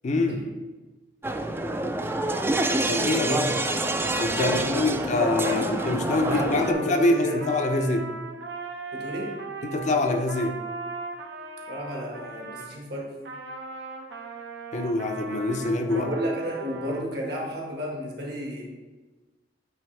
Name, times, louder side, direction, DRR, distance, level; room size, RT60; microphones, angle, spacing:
voice 1, 0.0-0.5 2.9-3.5 4.2-8.1 9.6-10.6 14.7-16.1, left 2 dB, 45° left, 5 dB, 0.5 m, -25 dB
sound 1, 1.2-6.7, right 2 dB, 15° right, 0.3 m, -27 dB
Trumpet, 2.5-12.7 13.2-17.0, right 4 dB, 85° right, 0.8 m, -39 dB
voice 2, 4.3-5.7 6.2-7.4 7.8-7.9 8.9-9.4 11.7-13.1 15.9-18.6, equal, 65° right, -1 dB, 1.5 m, -32 dB
8.5 x 3.5 x 3.2 m, 1.2 s
head